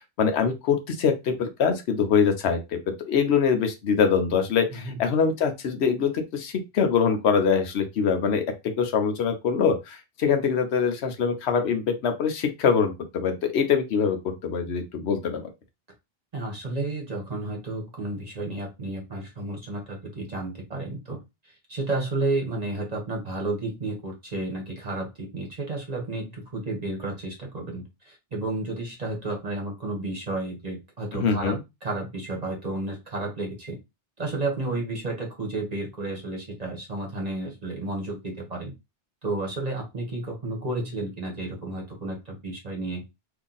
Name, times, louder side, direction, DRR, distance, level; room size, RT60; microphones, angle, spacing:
voice 1, 0.2-2.8 3.1-15.4 31.1-31.6, left 6 dB, 75° left, 6 dB, 0.9 m, -24 dB
voice 2, 16.3-21.2 21.7-33.8 34.2-38.7 39.2-43.0, right 2 dB, 40° right, 0 dB, 1.0 m, -32 dB
2.8 x 2.6 x 3.8 m, 0.23 s
omnidirectional pair, 1.1 m